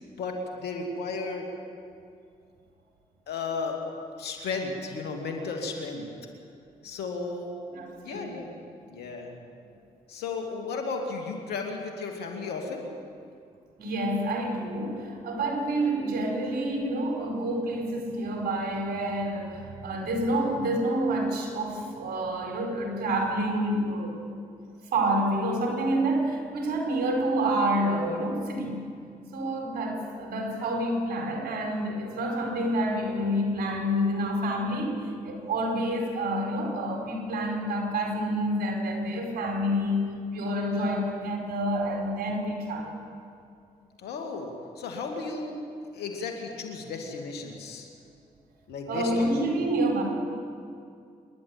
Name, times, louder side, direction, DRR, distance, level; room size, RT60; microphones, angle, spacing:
voice 1, 0.2-1.5 3.3-3.8 4.2-6.1 6.8-7.5 8.0-8.4 8.9-9.3 10.1-12.8 44.0-45.6 45.9-47.9 48.7-49.5, left 4 dB, 85° left, 3 dB, 2.7 m, -34 dB
voice 2, 7.7-8.4 13.8-24.2 24.9-28.9 29.3-35.0 35.2-42.9 48.9-50.0, right 1 dB, 75° right, 1 dB, 4.7 m, -28 dB
27.0 x 11.5 x 9.0 m, 2.4 s
supercardioid pair, 45°, 16 cm